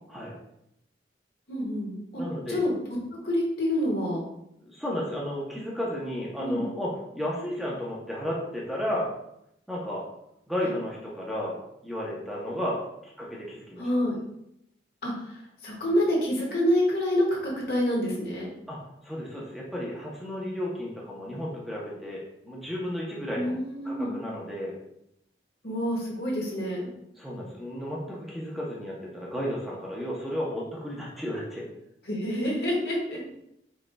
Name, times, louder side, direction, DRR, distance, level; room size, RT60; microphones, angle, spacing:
voice 1, 1.5-2.2 2.5-2.7 3.2-4.2 6.4-6.7 13.8-14.2 15.0-18.5 23.3-24.1 25.6-26.9 32.0-33.3, equal, 60° left, -2 dB, 1.4 m, -27 dB
voice 2, 2.2-2.6 4.6-9.1 9.7-10.0 10.5-11.5 11.8-12.8 13.2-13.9 18.7-23.6 23.8-24.7 27.2-31.6, equal, ahead, -5 dB, 0.7 m, -33 dB
5.1 x 4.5 x 2.3 m, 0.79 s
head